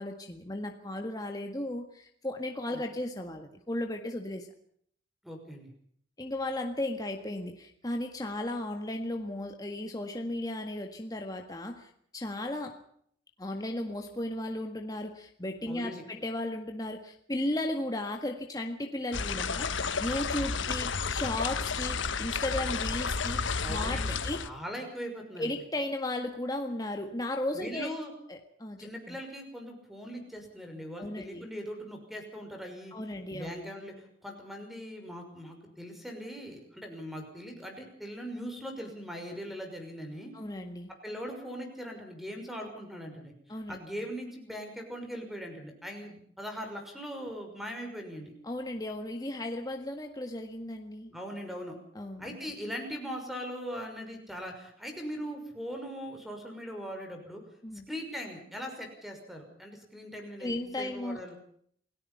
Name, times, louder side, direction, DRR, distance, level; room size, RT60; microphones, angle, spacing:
voice 1, 0.0-4.5 6.2-12.8 13.4-23.4 23.7-24.5 25.4-27.9 28.3-29.2 31.0-31.4 32.9-33.5 40.3-40.9 43.5-43.8 48.4-51.1 52.0-52.4 57.6-57.9 60.4-61.3, left 1 dB, 20° left, 3 dB, 1.7 m, -35 dB
voice 2, 5.2-5.7 15.6-16.0 23.6-25.5 27.5-28.1 28.8-33.0 33.3-40.3 41.0-48.3 51.1-51.8 52.2-57.4 57.9-61.4, equal, ahead, 3 dB, 6.0 m, -40 dB
sound 1, 19.1-24.5, left 5 dB, 85° left, 1.3 m, -31 dB
28.5 x 17.5 x 5.7 m, 0.65 s
head